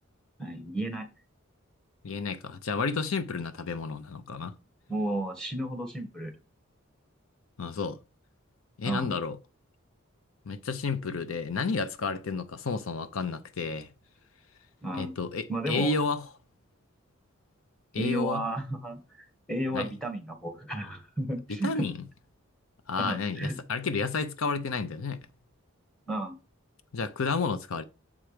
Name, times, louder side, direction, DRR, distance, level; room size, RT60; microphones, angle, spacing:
voice 1, 0.4-1.1 4.9-6.3 8.8-9.1 14.8-15.1 15.5-15.9 17.9-21.8 23.0-23.6 26.1-26.3, right 1 dB, 5° left, 1.4 m, -33 dB
voice 2, 2.0-4.6 7.6-8.0 8.8-9.4 10.5-13.9 14.9-16.3 17.9-18.4 19.7-19.9 21.6-22.0 22.9-25.3 26.9-27.8, left 4 dB, 75° left, 0.6 m, -31 dB
7.3 x 4.5 x 5.0 m
head